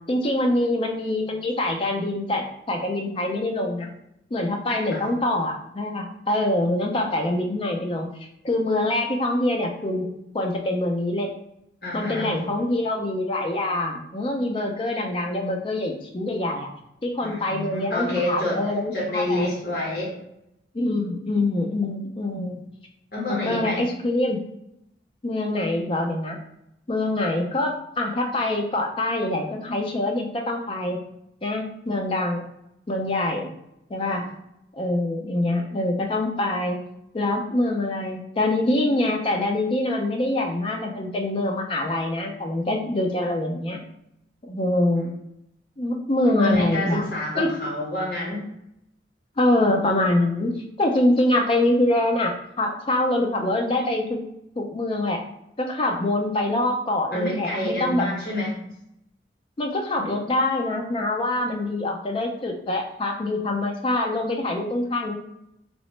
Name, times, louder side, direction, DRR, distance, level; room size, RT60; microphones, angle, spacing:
voice 1, 0.0-3.9 4.3-8.1 8.4-10.1 10.3-11.3 11.9-16.7 17.0-19.5 20.7-22.6 23.3-24.4 25.2-26.4 26.9-31.0 31.4-32.5 32.9-33.5 33.9-34.2 34.7-36.8 37.1-43.8 44.4-45.1 45.8-47.1 47.4-47.6 49.4-54.2 54.6-55.2 55.6-58.1 59.6-65.1, left 1 dB, 30° left, 2 dB, 0.4 m, -24 dB
voice 2, 11.8-12.4 17.2-18.6 18.9-20.1 23.1-23.8 34.1-34.2 46.3-48.5 57.1-58.6, left 1 dB, 55° left, -4 dB, 0.9 m, -28 dB
2.9 x 2.0 x 3.0 m, 0.81 s
head